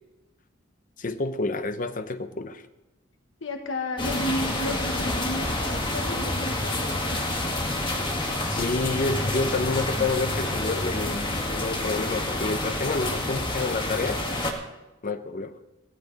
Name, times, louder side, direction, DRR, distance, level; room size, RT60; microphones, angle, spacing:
voice 1, 1.0-2.6 8.5-14.2 15.0-15.6, left 3 dB, 45° left, 0.8 m, -29 dB
voice 2, 3.4-7.2, left 1 dB, 75° left, 1.5 m, -33 dB
sound 1, 4.0-14.5, left 1 dB, 25° left, 1.8 m, -28 dB
16.0 x 14.0 x 4.1 m
head